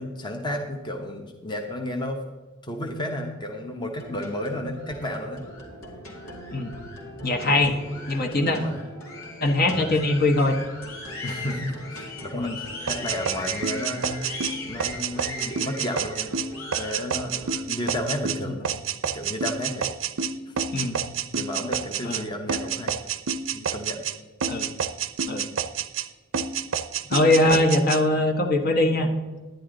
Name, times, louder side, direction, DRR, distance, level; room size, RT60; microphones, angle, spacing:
voice 1, 0.0-2.2 2.6-5.4 7.5-7.6 8.5-8.8 9.7-10.0 11.2-16.3 16.8-17.4 17.7-18.7 19.1-19.9 20.5-20.6 21.4-22.9 23.5-24.0 27.4-27.6, left 1 dB, 20° left, 2 dB, 0.9 m, -32 dB
sound 1, 3.9-17.6, left 2 dB, 85° left, 2.3 m, -39 dB
voice 2, 7.2-7.8 8.1-8.6 9.4-10.6 12.4-12.6 20.7-21.0 22.0-22.2 24.5-24.7 25.3-25.5 27.1-29.1, left 2 dB, 50° left, 4 dB, 1.2 m, -21 dB
sound 2, 12.9-22.2 22.5-24.2 24.4-26.1 26.3-28.0, right 7 dB, 65° right, 0.6 m, -28 dB
10.5 x 10.5 x 3.8 m, 1.3 s
head